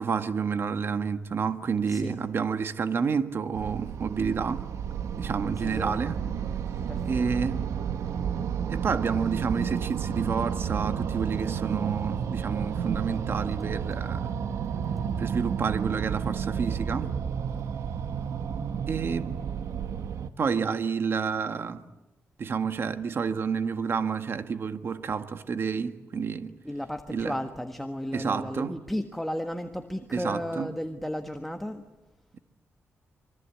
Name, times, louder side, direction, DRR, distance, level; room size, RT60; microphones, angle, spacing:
voice 1, 0.0-4.6 5.2-6.2 7.0-7.6 8.7-14.3 15.2-17.1 18.9-19.4 20.4-21.8 22.4-26.5 27.1-27.4 28.1-28.7 30.1-30.7, right 6 dB, 50° right, 1.6 m, -29 dB
voice 2, 1.9-2.2 5.5-6.0 6.9-7.5 26.6-31.8, equal, 5° left, 1.5 m, -34 dB
sound 1, 3.5-20.3, right 7 dB, 90° right, 1.4 m, -31 dB
27.0 x 24.0 x 8.6 m
wide cardioid pair, 120°, 5 cm